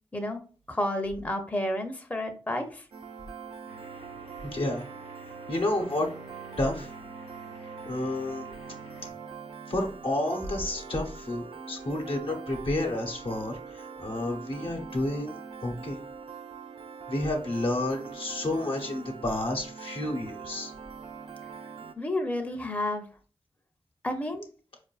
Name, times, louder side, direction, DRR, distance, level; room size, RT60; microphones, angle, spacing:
voice 1, 0.7-2.8 22.0-23.1 24.0-24.4, left 1 dB, 15° left, 4 dB, 0.6 m, -31 dB
Piano, 2.9-21.9, right 6 dB, 70° right, 0.4 m, -43 dB
sound 1, 3.7-9.1, left 4 dB, 90° left, 0.5 m, -52 dB
voice 2, 4.5-4.8 5.5-6.1 6.6-6.9 7.8-8.5 9.7-16.0 17.1-20.7, left 1 dB, 65° left, 1 dB, 0.9 m, -30 dB
4.5 x 2.5 x 2.3 m, 0.39 s
cardioid pair, 45°, 10 cm